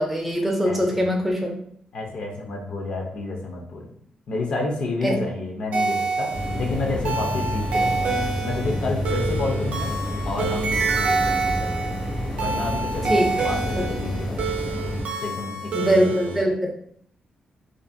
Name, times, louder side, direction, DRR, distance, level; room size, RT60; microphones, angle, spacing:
voice 1, 0.0-1.5 5.0-5.2 13.1-13.2 15.7-16.7, equal, 5° right, 0 dB, 0.4 m, -22 dB
voice 2, 0.6-1.0 1.9-3.9 4.3-8.1 8.4-9.9 10.2-11.9 12.4-14.5 15.2-16.5, left 2 dB, 55° left, 0 dB, 0.5 m, -30 dB
sound 1, 5.7-16.4, right 4 dB, 70° right, 0.4 m, -27 dB
sound 2, 6.3-15.0, left 1 dB, 75° left, 0.8 m, -29 dB
2.5 x 2.4 x 2.5 m, 0.64 s
wide cardioid pair, 175°, 2 cm